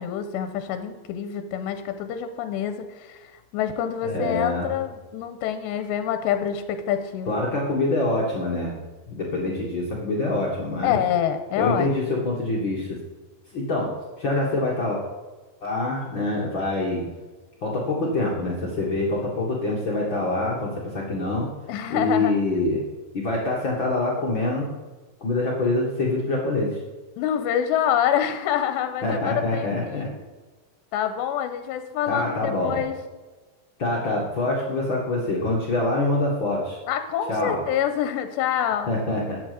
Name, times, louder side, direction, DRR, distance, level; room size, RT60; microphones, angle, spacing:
voice 1, 0.0-3.2 3.5-7.4 10.8-11.9 21.7-22.4 27.2-30.2 30.9-32.9 36.9-38.9, left 9 dB, 85° left, 9 dB, 2.9 m, -26 dB
voice 2, 4.0-4.7 7.3-8.7 9.1-11.0 11.6-13.0 13.5-13.9 14.2-15.0 15.6-17.0 17.6-21.5 21.9-22.8 23.1-24.7 25.2-26.8 29.0-30.1 32.1-32.8 33.8-36.8 37.3-37.6 38.9-39.4, left 2 dB, 60° left, -3 dB, 1.2 m, -25 dB
12.0 x 8.8 x 5.2 m, 1.3 s
omnidirectional pair, 5.1 m